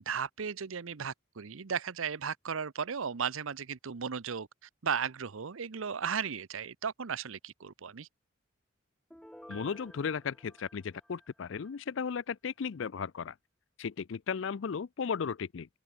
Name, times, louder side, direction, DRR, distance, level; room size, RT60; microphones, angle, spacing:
voice 1, 0.0-8.1, right 6 dB, 85° right, 0.7 m, -35 dB
Piano, 9.1-11.8 12.2-12.3, equal, 5° left, 0.7 m, -53 dB
voice 2, 9.5-13.3 13.8-15.7, left 6 dB, 70° left, 0.4 m, -35 dB
open air
head